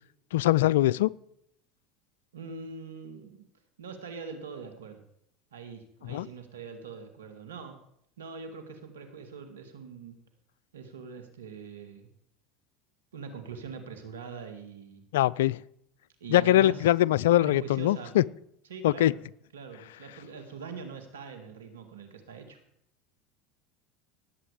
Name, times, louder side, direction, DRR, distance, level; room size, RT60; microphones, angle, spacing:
voice 1, 0.3-1.1 6.1-6.3 15.1-15.6 16.3-18.2 18.8-19.1, left 14 dB, 80° left, 23 dB, 0.4 m, -22 dB
voice 2, 2.3-3.5 3.8-5.0 5.5-7.8 8.2-10.2 10.7-12.1 13.1-15.0 16.2-16.9 17.4-18.1 18.7-19.2 19.5-22.6, right 5 dB, 90° right, 6 dB, 1.9 m, -43 dB
18.0 x 8.0 x 5.0 m, 0.72 s
hypercardioid pair, 85°, 0 cm